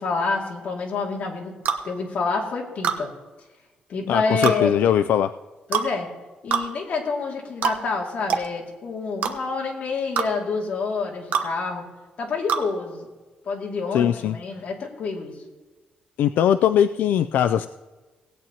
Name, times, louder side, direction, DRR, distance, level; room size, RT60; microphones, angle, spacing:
voice 1, 0.0-1.5 1.8-3.1 3.9-4.9 5.7-6.1 6.4-11.8 12.2-13.1 13.4-15.3, left 4 dB, 50° left, -1 dB, 2.3 m, -27 dB
sound 1, 1.7-1.8 2.8-3.0 4.4-4.6 5.7-5.9 6.5-6.7 7.6-7.8 8.3-8.5 9.2-9.3 10.2-10.3 11.3-11.5 12.5-12.7, right 7 dB, 65° right, 0.9 m, -23 dB
voice 2, 4.1-5.3 13.9-14.4 16.2-17.7, left 9 dB, 85° left, 9 dB, 0.3 m, -20 dB
18.5 x 9.0 x 2.9 m, 1.2 s
cardioid pair, 165°, 3 cm